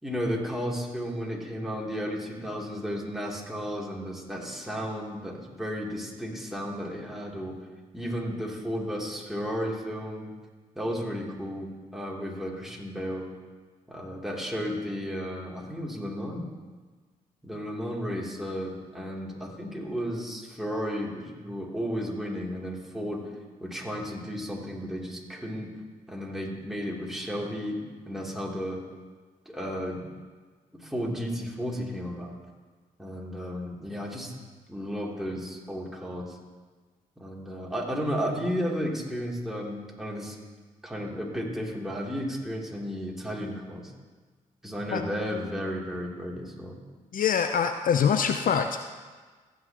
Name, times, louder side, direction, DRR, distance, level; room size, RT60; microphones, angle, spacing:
voice 1, 0.0-7.5 7.9-10.3 10.7-13.3 13.9-16.4 17.4-23.2 23.6-25.7 26.1-28.8 29.4-30.0 30.7-32.4 33.0-34.3 34.7-36.4 37.2-40.4 40.8-43.9 44.6-46.8, equal, ahead, -3 dB, 3.0 m, -33 dB
voice 2, 47.1-48.9, left 7 dB, 55° left, 7 dB, 0.6 m, -24 dB
15.5 x 8.9 x 3.0 m, 1.4 s
hypercardioid pair, 45°, 17 cm